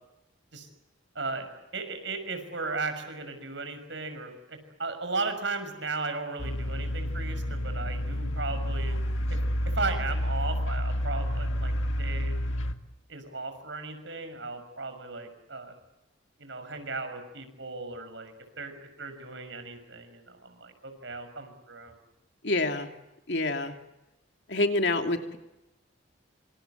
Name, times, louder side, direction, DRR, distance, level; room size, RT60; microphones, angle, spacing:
voice 1, 1.1-1.5 1.7-9.0 9.3-9.4 9.7-11.7 12.0-12.3 13.1-15.7 16.4-21.9, right 3 dB, 70° right, 8 dB, 6.3 m, -36 dB
sound 1, 6.4-12.7, equal, 90° left, 2.1 m, -29 dB
voice 2, 22.4-22.9 23.3-23.7 24.5-25.4, left 2 dB, 65° left, 5 dB, 2.8 m, -27 dB
27.5 x 26.5 x 8.2 m, 0.96 s
head